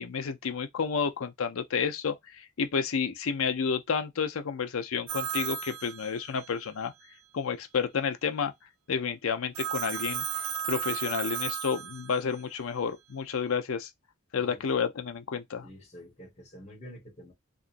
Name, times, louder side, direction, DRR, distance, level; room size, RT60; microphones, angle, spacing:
voice 1, 0.0-6.9 7.3-8.5 8.9-10.3 10.7-13.9 14.3-15.7, left 6 dB, 70° left, 0.5 m, -30 dB
Telephone, 5.1-6.6 9.5-12.4, right 8 dB, 70° right, 0.5 m, -34 dB
voice 2, 15.6-17.3, equal, 30° left, 1.3 m, -48 dB
2.9 x 2.4 x 2.5 m
head